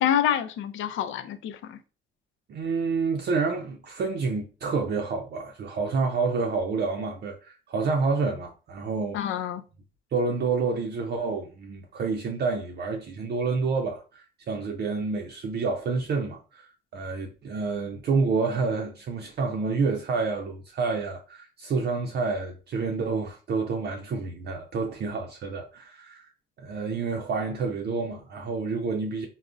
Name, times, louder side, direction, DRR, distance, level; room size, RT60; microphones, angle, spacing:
voice 1, 0.0-1.8 9.1-9.6, left 10 dB, 75° left, 0.4 m, -27 dB
voice 2, 2.5-9.4 10.1-26.3 26.6-29.3, right 4 dB, 55° right, 0.5 m, -28 dB
3.6 x 2.0 x 2.4 m
cardioid pair, 90°, 20 cm